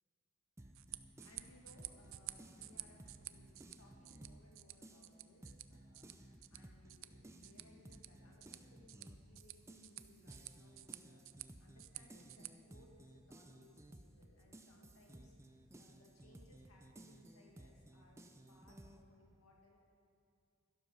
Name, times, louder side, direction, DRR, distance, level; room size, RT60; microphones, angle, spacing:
sound 1, 0.6-4.5 4.8-19.0, right 1 dB, 15° right, 0.7 m, -58 dB
sound 2, 0.6-12.5, right 15 dB, 65° right, 0.5 m, -53 dB
voice 1, 1.0-3.0 3.3-11.2 11.6-19.8, left 2 dB, 85° left, -1 dB, 2.1 m, -66 dB
12.0 x 12.0 x 5.6 m, 2.6 s
head